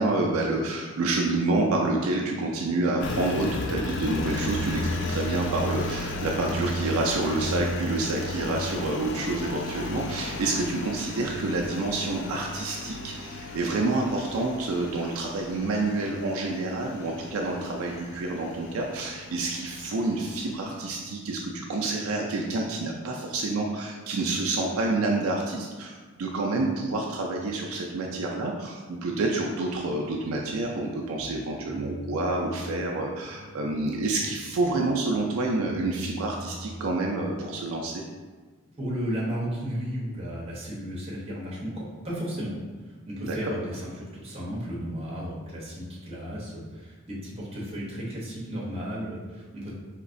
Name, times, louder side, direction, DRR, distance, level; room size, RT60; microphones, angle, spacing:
voice 1, 0.0-4.8 5.1-38.0 43.2-43.4, right 2 dB, 70° right, 0 dB, 0.4 m, -28 dB
Engine, 3.0-20.9, left 1 dB, 50° left, 0.3 m, -34 dB
sound 1, 29.7-37.6, equal, 15° left, 1.2 m, -44 dB
voice 2, 38.8-42.5 42.8-49.7, equal, 25° right, -6 dB, 0.8 m, -34 dB
4.0 x 2.8 x 2.5 m, 1.4 s
head